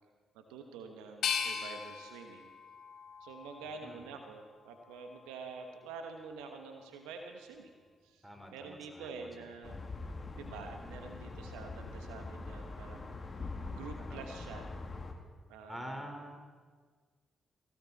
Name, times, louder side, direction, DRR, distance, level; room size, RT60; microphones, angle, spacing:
voice 1, 0.3-2.5 3.2-7.7 8.0-9.8 10.3-13.2 13.7-14.7 15.5-16.1, right 4 dB, 85° right, 5 dB, 1.2 m, -47 dB
sound 1, 1.2-4.1 4.7-5.5, left 7 dB, 70° left, 1.2 m, -39 dB
voice 2, 8.2-9.5 14.0-14.4 15.7-16.4, equal, 5° right, 3 dB, 4.0 m, -46 dB
sound 2, 9.6-15.1, left 3 dB, 40° left, 2.0 m, -43 dB
18.5 x 16.0 x 4.1 m, 1.5 s
hypercardioid pair, 40°, 0 cm